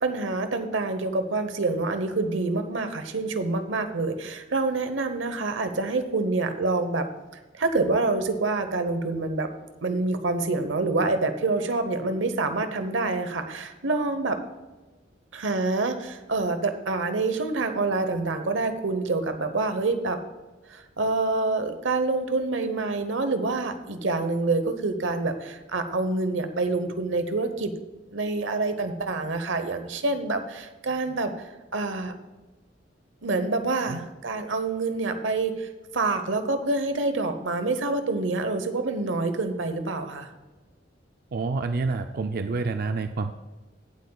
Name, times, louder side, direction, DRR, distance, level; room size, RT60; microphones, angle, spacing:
voice 1, 0.0-7.1 7.5-9.5 9.8-14.4 15.3-20.2 20.7-27.7 28.1-31.3 31.7-32.1 33.2-40.3, right 3 dB, 85° right, 9 dB, 0.9 m, -27 dB
voice 2, 41.3-43.3, right 3 dB, 50° right, 7 dB, 0.4 m, -28 dB
17.5 x 7.9 x 2.3 m, 1.2 s
head